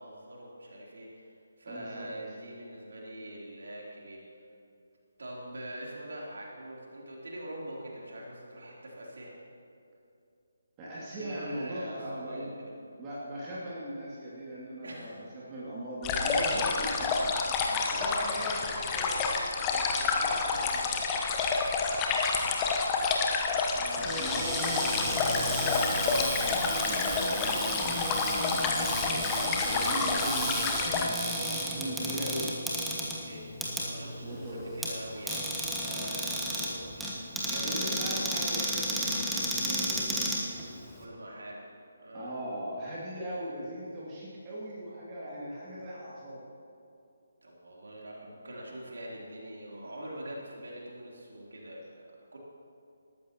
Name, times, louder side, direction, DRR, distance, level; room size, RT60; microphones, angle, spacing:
voice 1, 0.0-4.2 5.2-9.4 11.1-12.7 14.8-15.2 17.7-18.3 22.1-23.4 23.9-24.6 31.9-32.2 33.0-33.5 33.8-38.5 41.0-41.7 42.0-42.3 47.4-51.9 52.3-52.4, right 1 dB, 60° right, -4 dB, 3.4 m, -44 dB
voice 2, 1.7-2.1 10.8-12.5 13.0-17.3 17.6-21.2 23.8-26.3 26.8-32.5 34.2-34.7 37.6-40.2 42.1-46.4, right 1 dB, 20° right, -8 dB, 2.5 m, -39 dB
sound 1, 16.0-31.1, left 4 dB, 15° left, 1.0 m, -29 dB
Cupboard open or close, 24.0-41.0, equal, 5° right, 1.4 m, -33 dB
20.0 x 13.5 x 3.0 m, 2.6 s
figure-of-eight pair, 145°, 0 cm